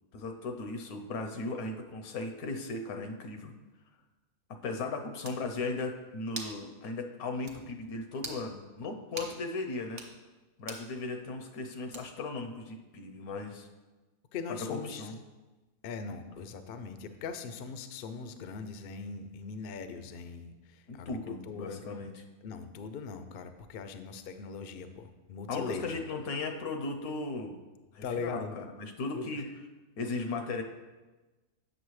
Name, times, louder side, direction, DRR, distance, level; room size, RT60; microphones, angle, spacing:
voice 1, 0.1-3.5 4.6-10.0 10.6-13.7 14.7-15.2 20.9-22.2 25.5-27.6 27.9-29.4 30.0-30.6, left 3 dB, 85° left, 5 dB, 1.2 m, -37 dB
sound 1, 5.2-5.4 6.3-6.6 7.0-7.1 7.5-7.6 8.2-8.4 9.2-9.3 9.9-10.1 10.7-10.9 11.9-12.3, right 3 dB, 40° right, 0.8 m, -42 dB
voice 2, 14.3-15.1 15.8-21.8 22.4-26.0 28.0-28.6 29.1-29.5, left 5 dB, 65° left, 9 dB, 0.5 m, -40 dB
8.1 x 6.3 x 3.1 m, 1.2 s
omnidirectional pair, 1.5 m